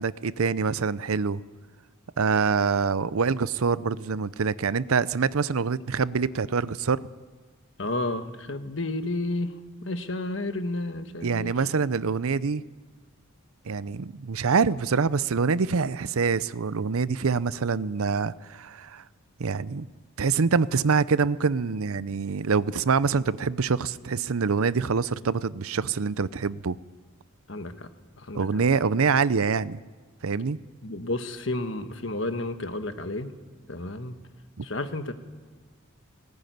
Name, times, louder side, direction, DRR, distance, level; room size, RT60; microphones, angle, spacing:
voice 1, 0.0-1.4 2.2-7.1 11.2-12.6 13.7-19.0 19.4-19.9 20.2-26.8 28.3-29.8 30.2-30.6 34.6-34.7, right 5 dB, 80° right, 0.6 m, -25 dB
voice 2, 7.8-9.5 9.8-11.5 27.5-27.9 28.3-28.5 30.8-33.3 33.7-34.2 34.6-35.1, left 2 dB, 60° left, 1.4 m, -31 dB
19.0 x 19.0 x 9.4 m
head